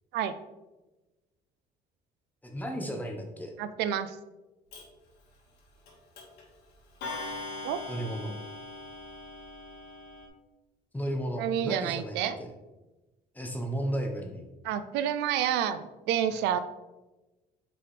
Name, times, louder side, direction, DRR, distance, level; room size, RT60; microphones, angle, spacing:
voice 1, 2.4-3.5 7.9-8.3 10.9-12.5 13.3-14.4 16.3-16.4, right 1 dB, 10° left, 3 dB, 1.0 m, -34 dB
voice 2, 3.6-4.2 7.6-7.8 11.4-12.4 14.6-16.6, right 10 dB, 90° right, 11 dB, 0.5 m, -29 dB
Clock, 4.7-4.8 5.9-6.0 6.2-6.4 7.0-10.3, left 2 dB, 80° left, 1.8 m, -40 dB
6.1 x 4.8 x 3.3 m, 1.1 s
cardioid pair, 110°, 17 cm